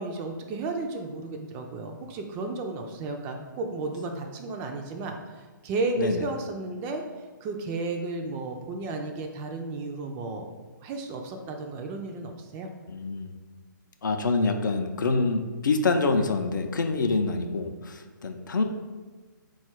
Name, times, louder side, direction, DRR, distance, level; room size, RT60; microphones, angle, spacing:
voice 1, 0.0-7.0 7.4-10.5 10.8-12.7, right 3 dB, 20° right, 4 dB, 0.3 m, -33 dB
voice 2, 12.9-13.3 14.0-18.6, left 3 dB, 70° left, 6 dB, 0.5 m, -26 dB
3.9 x 2.4 x 4.5 m, 1.4 s
figure-of-eight pair, 130°, 11 cm